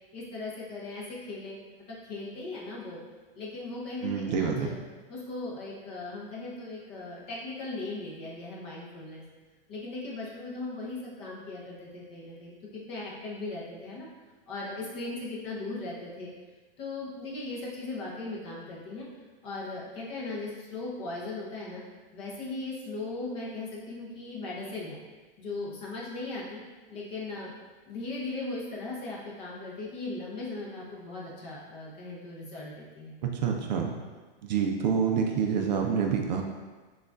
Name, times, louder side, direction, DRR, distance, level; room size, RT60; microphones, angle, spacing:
voice 1, 0.1-1.6 1.9-3.0 3.3-4.7 5.1-9.2 9.7-14.1 14.5-16.3 16.8-19.1 19.4-21.8 22.1-25.0 25.4-26.6 26.9-27.5 27.9-33.1, left 2 dB, 20° left, -5 dB, 0.5 m, -38 dB
voice 2, 4.0-4.8 33.2-33.9 34.4-36.4, right 6 dB, 50° right, 2 dB, 0.4 m, -27 dB
6.2 x 2.3 x 2.4 m, 1.3 s
supercardioid pair, 160°, 29 cm